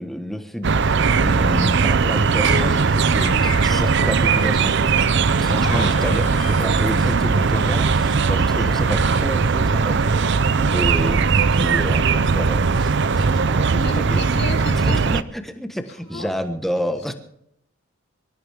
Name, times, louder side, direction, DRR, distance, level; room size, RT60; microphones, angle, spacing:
voice 1, 0.0-4.8 5.4-10.1 10.7-14.3 14.7-17.1, equal, ahead, 6 dB, 1.2 m, -29 dB
sound 1, 0.6-15.2, right 5 dB, 50° right, 0.6 m, -19 dB
sound 2, 2.4-4.8, right 1 dB, 85° right, 5.6 m, -33 dB
Harmonica, 3.2-9.3, left 9 dB, 85° left, 3.0 m, -41 dB
voice 2, 5.6-6.2 10.6-10.8 13.7-15.0 16.0-16.3, left 2 dB, 45° left, 2 dB, 2.8 m, -31 dB
25.0 x 13.5 x 3.5 m, 0.75 s
head